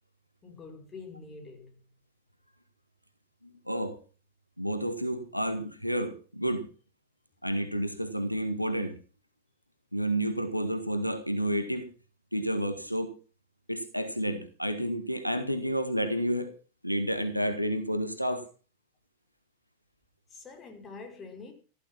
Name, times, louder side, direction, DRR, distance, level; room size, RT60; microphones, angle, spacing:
voice 1, 0.4-1.8 20.3-21.5, left 4 dB, 20° left, 5.4 m, -45 dB
voice 2, 3.4-4.0 4.6-6.7 7.4-9.0 9.9-11.9 12.3-13.1 13.7-16.5 16.8-18.4, equal, 90° left, 1.8 m, -30 dB
14.5 x 13.5 x 5.9 m
figure-of-eight pair, 90°, 0 cm